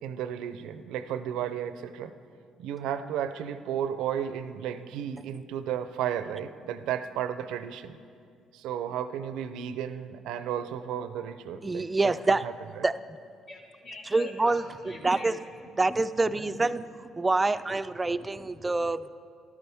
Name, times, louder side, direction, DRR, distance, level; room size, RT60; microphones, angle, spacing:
voice 1, 0.0-2.1 2.6-8.0 8.5-12.5, right 9 dB, 85° right, 12 dB, 0.5 m, -33 dB
voice 2, 11.6-12.4 12.8-13.0 14.1-14.6 15.0-15.3 15.8-16.8 17.2-19.2, right 3 dB, 20° right, 13 dB, 0.3 m, -26 dB
voice 3, 13.5-15.8 16.3-16.6 17.4-17.5 18.0-18.9, left 1 dB, 60° left, -3 dB, 2.0 m, -46 dB
13.5 x 12.0 x 3.5 m, 2.3 s
cardioid pair, 85°, 0 cm